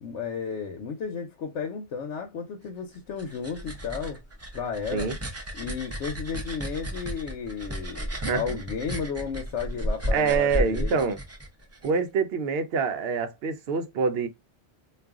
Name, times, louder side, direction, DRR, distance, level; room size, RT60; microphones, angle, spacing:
voice 1, 0.0-4.2 4.5-5.1 5.5-11.0, left 6 dB, 85° left, 1.0 m, -33 dB
sound 1, 2.9-11.9, equal, 20° right, 0.4 m, -33 dB
voice 2, 8.2-8.5 10.1-11.2 11.8-14.3, right 5 dB, 65° right, 0.8 m, -26 dB
2.4 x 2.4 x 3.4 m
omnidirectional pair, 1.2 m